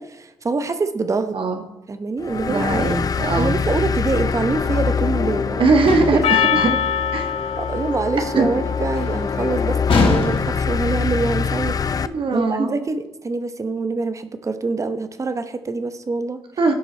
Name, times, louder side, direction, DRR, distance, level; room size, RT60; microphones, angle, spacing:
voice 1, 0.0-1.4 1.9-2.8 3.4-5.8 6.1-6.8 7.5-11.8 12.3-16.4, right 3 dB, 30° right, 10 dB, 0.8 m, -25 dB
voice 2, 1.3-1.6 2.5-3.6 5.6-6.7 7.1-7.3 8.2-8.5 12.1-12.8 16.6-16.7, right 3 dB, 60° right, 5 dB, 1.3 m, -20 dB
sound 1, 2.2-12.1, left 6 dB, 40° left, 0.4 m, -24 dB
sound 2, 5.9-6.4 9.9-10.7, left 3 dB, 60° left, 2.0 m, -21 dB
Percussion, 6.2-10.8, left 8 dB, 80° left, 0.6 m, -25 dB
16.0 x 5.5 x 4.4 m, 0.95 s
cardioid pair, 100°, 10 cm